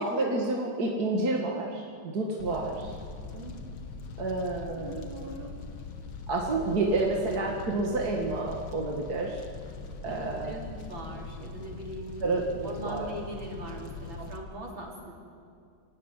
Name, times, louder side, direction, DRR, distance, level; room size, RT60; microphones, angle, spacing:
voice 1, 0.0-2.9 4.2-5.0 6.3-9.4 10.0-10.6 12.2-12.5 12.8-13.1, right 2 dB, 45° right, -1 dB, 2.4 m, -29 dB
Fire, 2.4-14.4, left 3 dB, 70° left, 2.4 m, -42 dB
voice 2, 4.7-5.5 6.5-6.6 10.1-12.2 12.6-15.1, right 1 dB, 65° right, -1 dB, 4.8 m, -40 dB
25.5 x 17.5 x 9.9 m, 2.3 s
omnidirectional pair, 2.3 m